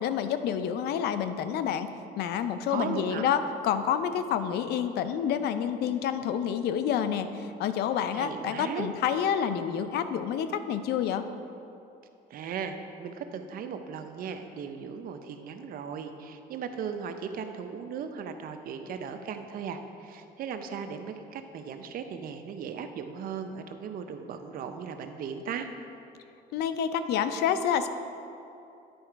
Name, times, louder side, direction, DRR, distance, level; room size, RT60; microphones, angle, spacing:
voice 1, 0.0-1.9 2.2-11.3 26.5-27.9, left 8 dB, 75° left, 10 dB, 0.5 m, -28 dB
voice 2, 2.7-3.3 8.1-8.9 12.3-25.7, right 6 dB, 60° right, 7 dB, 0.6 m, -37 dB
10.5 x 4.7 x 4.5 m, 2.7 s
cardioid pair, 110°, 17 cm